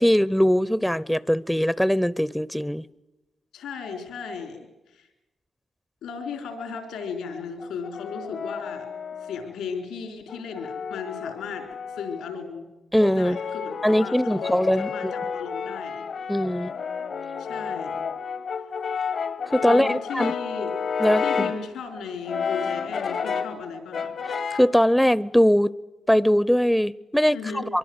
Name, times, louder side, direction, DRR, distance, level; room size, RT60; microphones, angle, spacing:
voice 1, 0.0-2.8 12.9-13.4 13.8-15.1 16.3-16.7 19.5-20.3 21.0-21.5 24.5-25.7 26.1-27.4 27.7-27.8, equal, 5° left, 0.8 m, -21 dB
voice 2, 3.5-5.1 6.0-8.9 9.2-12.7 13.1-14.5 14.8-16.1 17.4-18.0 19.6-20.8 21.2-24.2 27.3-27.7, left 5 dB, 85° left, 4.4 m, -36 dB
Brass instrument, 7.6-9.5 10.3-12.3 13.0-21.7 22.3-23.6 23.9-24.8, left 6 dB, 70° left, 1.5 m, -31 dB
23.5 x 23.5 x 8.1 m
supercardioid pair, 45°, 0 cm